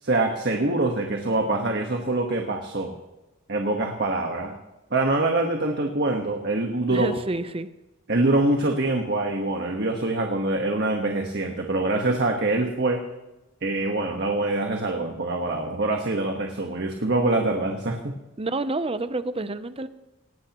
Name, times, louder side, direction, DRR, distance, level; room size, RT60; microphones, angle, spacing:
voice 1, 0.0-3.0 3.5-4.5 4.9-7.1 8.1-13.0 13.6-18.1, right 2 dB, 55° right, 2 dB, 1.4 m, -24 dB
voice 2, 6.9-7.7 18.4-19.9, right 2 dB, 30° right, 12 dB, 0.7 m, -29 dB
19.0 x 17.5 x 3.1 m, 1.0 s
head